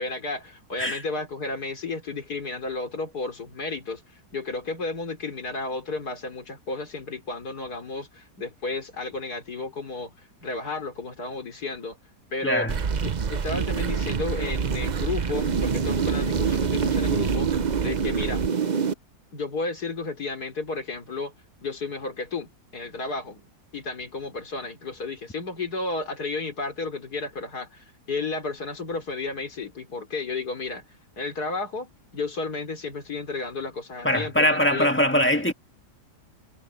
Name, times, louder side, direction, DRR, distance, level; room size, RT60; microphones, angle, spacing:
voice 1, 0.0-4.0 4.3-12.0 12.3-12.7 13.0-17.5 17.8-18.5 19.3-21.3 21.6-23.5 23.7-30.9 31.2-34.9, left 3 dB, 70° left, 4.6 m, -32 dB
voice 2, 12.4-12.7 34.0-35.5, equal, 5° left, 1.9 m, -22 dB
sound 1, 12.7-18.9, right 6 dB, 40° right, 0.6 m, -25 dB
omnidirectional pair, 1.7 m